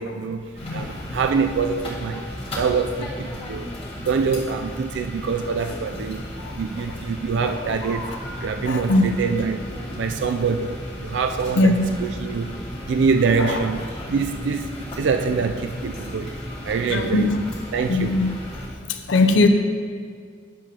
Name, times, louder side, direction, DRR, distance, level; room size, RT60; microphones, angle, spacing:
voice 1, 0.0-2.2 2.6-3.7 4.1-6.3 6.6-8.1 8.4-9.7 10.0-10.8 11.0-12.5 12.9-16.3 16.6-17.3 17.7-18.1, right 5 dB, 70° right, 7 dB, 0.3 m, -25 dB
sound 1, 0.5-18.7, left 1 dB, 30° left, 1.5 m, -35 dB
voice 2, 8.7-9.1 11.6-11.9 13.4-13.6 16.9-17.4 17.9-18.3 19.1-19.5, left 2 dB, 75° left, 5 dB, 0.5 m, -19 dB
9.6 x 7.3 x 2.9 m, 2.1 s
head